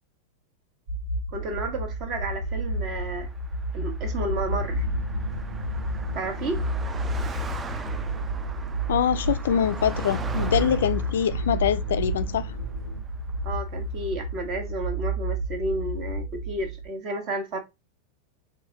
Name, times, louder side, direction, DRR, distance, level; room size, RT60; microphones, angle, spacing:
sound 1, 0.9-16.9, right 1 dB, 55° right, 1.1 m, -31 dB
voice 1, 1.3-3.3 3.7-4.8 6.1-6.7 13.4-17.6, right 2 dB, 35° right, 1.4 m, -32 dB
Car passing by, 2.6-14.1, right 4 dB, 15° right, 0.5 m, -42 dB
sound 2, 3.9-13.0, right 2 dB, 80° right, 1.6 m, -39 dB
voice 2, 8.9-12.5, left 9 dB, 60° left, 0.3 m, -24 dB
4.4 x 3.6 x 3.0 m
figure-of-eight pair, 90°, 0 cm